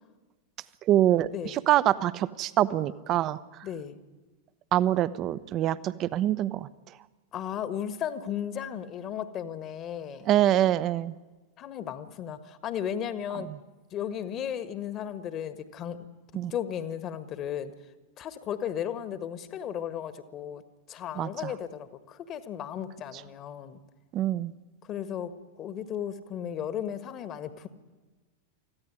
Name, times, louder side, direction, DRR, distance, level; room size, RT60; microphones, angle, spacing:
voice 1, 0.9-3.4 4.7-6.7 10.2-11.1 13.5-13.6 16.3-16.5 21.2-21.5 24.1-24.5, right 12 dB, 35° right, 17 dB, 0.8 m, -25 dB
voice 2, 3.6-4.0 7.3-10.3 11.6-13.5 13.9-16.1 16.5-17.7 18.2-20.6 20.9-23.8 24.8-25.3 25.6-27.7, left 9 dB, 35° left, 12 dB, 1.5 m, -35 dB
25.0 x 15.0 x 9.9 m, 1.2 s
figure-of-eight pair, 90°, 0 cm